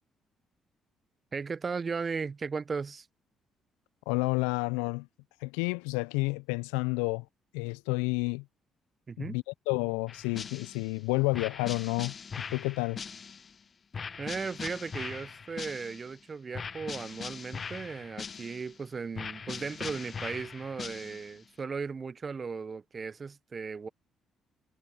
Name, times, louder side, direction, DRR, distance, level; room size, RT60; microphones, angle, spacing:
voice 1, 1.3-3.1 9.1-9.4 14.2-23.9, right 5 dB, 40° right, 1.1 m, -36 dB
voice 2, 4.1-5.1 5.4-7.3 7.5-8.4 9.2-13.0, left 28 dB, 75° left, 0.7 m, -30 dB
sound 1, 10.1-10.9 11.3-13.5 13.9-16.2 16.5-18.8 19.1-21.4, left 6 dB, 40° left, 1.0 m, -41 dB
hypercardioid pair, 45°, 0 cm